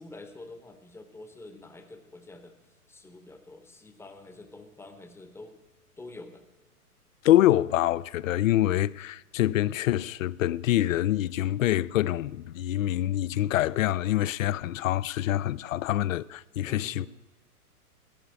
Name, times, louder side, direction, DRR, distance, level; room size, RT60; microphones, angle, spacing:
voice 1, 0.0-5.6 6.0-6.4 16.6-17.1, left 2 dB, 5° left, 0.9 m, -47 dB
voice 2, 7.2-17.1, left 13 dB, 60° left, 0.5 m, -25 dB
15.5 x 5.6 x 9.8 m
figure-of-eight pair, 115°, 46 cm